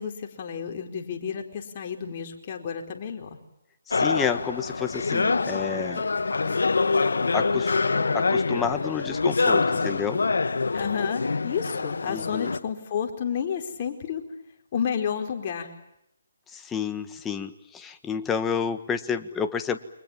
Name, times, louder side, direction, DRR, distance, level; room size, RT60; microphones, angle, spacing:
voice 1, 0.0-3.4 10.7-14.3 14.7-15.7, left 7 dB, 40° left, 3 dB, 4.5 m, -31 dB
sound 1, 3.9-12.6, left 4 dB, 75° left, 1.8 m, -25 dB
voice 2, 3.9-6.1 7.3-7.8 8.1-10.2 12.1-12.5 16.5-19.8, left 7 dB, 10° left, 9 dB, 1.6 m, -30 dB
29.5 x 25.5 x 7.5 m, 0.83 s
figure-of-eight pair, 150°, 0 cm